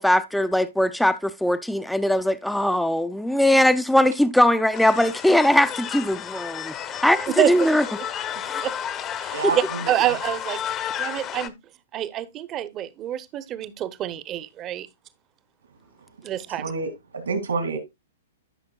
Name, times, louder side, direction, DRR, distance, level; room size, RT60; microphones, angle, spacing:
voice 1, 0.0-6.7 7.0-7.8 8.4-8.6, left 1 dB, ahead, 0.5 m, -20 dB
sound 1, 4.7-11.5, left 9 dB, 30° left, 0.8 m, -32 dB
voice 2, 7.3-7.8 8.6-8.7 9.2-10.6 11.0-11.6 11.9-14.9 16.2-16.7, right 12 dB, 30° right, 0.8 m, -27 dB
voice 3, 9.3-9.9 16.6-17.8, right 4 dB, 75° right, 2.5 m, -28 dB
13.0 x 5.8 x 2.3 m
figure-of-eight pair, 115°, 0 cm